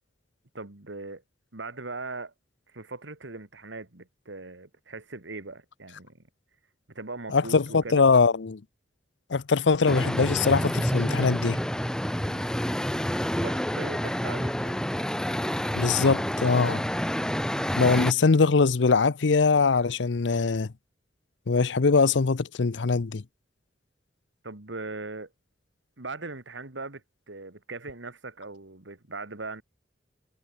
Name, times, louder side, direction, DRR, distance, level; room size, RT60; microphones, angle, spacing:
voice 1, 0.5-1.2 1.5-2.3 2.7-6.2 6.9-8.1 12.2-12.5 13.3-14.8 24.4-25.3 26.0-29.6, right 3 dB, 85° right, 2.2 m, -40 dB
voice 2, 7.3-8.6 9.3-11.6 15.7-16.8 17.8-20.7 21.5-23.2, left 4 dB, 75° left, 0.6 m, -22 dB
sound 1, 9.9-18.1, equal, 5° left, 0.7 m, -28 dB
head